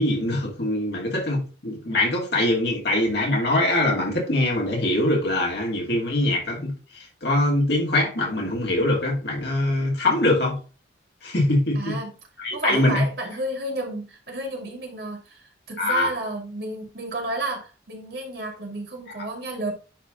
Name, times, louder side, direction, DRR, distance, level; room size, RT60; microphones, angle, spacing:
voice 1, 0.0-10.6 11.2-12.0 12.4-13.0 15.8-16.1, left 1 dB, 60° left, 2.5 m, -23 dB
voice 2, 11.7-12.1 12.5-19.7, right 2 dB, 60° right, 2.4 m, -31 dB
10.0 x 3.6 x 3.8 m
head